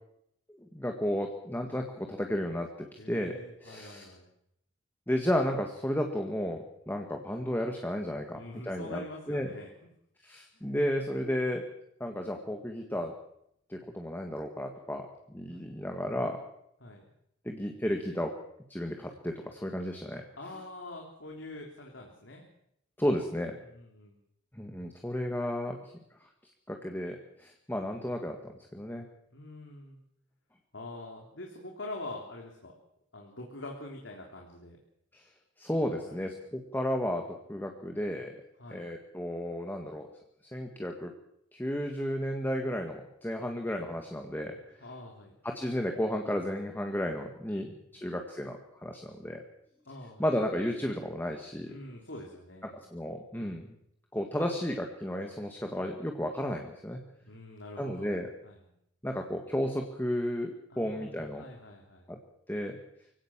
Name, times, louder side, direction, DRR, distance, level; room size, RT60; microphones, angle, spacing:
voice 1, 0.7-4.0 5.1-9.5 10.2-11.6 12.0-13.1 13.7-16.4 17.5-18.3 18.7-20.3 23.0-23.6 24.5-25.9 26.7-29.1 35.1-35.2 35.6-38.4 38.7-40.1 40.5-41.1 41.5-44.6 45.4-49.4 50.2-51.7 52.9-53.6 54.1-57.0 57.8-58.3 59.0-61.4 62.1-62.2 62.5-62.8, equal, 10° left, 3 dB, 1.8 m, -33 dB
voice 2, 3.0-4.3 8.3-9.7 10.5-10.7 13.8-14.0 15.5-15.7 16.8-17.1 20.4-22.4 23.6-24.2 27.8-27.9 29.3-30.0 30.7-32.7 33.1-34.8 35.9-36.4 38.6-38.9 44.8-45.3 47.9-48.1 49.9-50.3 51.7-52.8 57.2-58.2 58.4-58.7 60.7-62.1, left 2 dB, 85° left, 0 dB, 3.6 m, -45 dB
24.5 x 17.0 x 7.5 m, 0.76 s
head